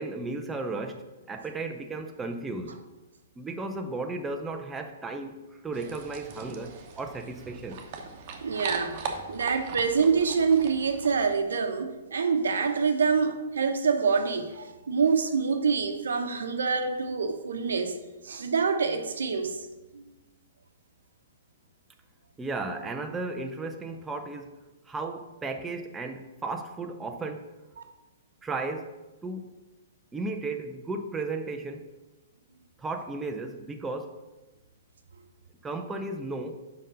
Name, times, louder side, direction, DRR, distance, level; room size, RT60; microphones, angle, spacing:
voice 1, 0.0-2.8 3.4-7.8 22.4-24.6 24.8-27.5 28.4-28.9 29.2-29.6 30.1-31.9 32.8-34.2 35.6-36.6, right 3 dB, 10° right, 4 dB, 0.6 m, -35 dB
sound 1, 5.7-11.3, right 5 dB, 40° right, 1.0 m, -40 dB
voice 2, 8.4-18.0 18.2-19.7 19.9-20.0, right 5 dB, 70° right, 6 dB, 0.9 m, -26 dB
5.4 x 5.1 x 6.3 m, 1.1 s
figure-of-eight pair, 120°, 0 cm